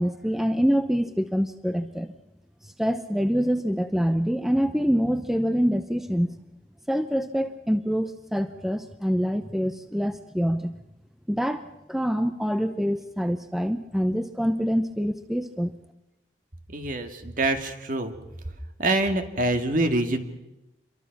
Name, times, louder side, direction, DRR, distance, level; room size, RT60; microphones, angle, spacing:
voice 1, 0.0-2.1 2.8-6.3 6.9-10.7 11.3-15.7, equal, ahead, 9 dB, 0.7 m, -25 dB
voice 2, 16.7-18.1 18.8-20.2, right 2 dB, 50° right, 6 dB, 2.0 m, -25 dB
27.0 x 23.0 x 5.9 m, 0.94 s
head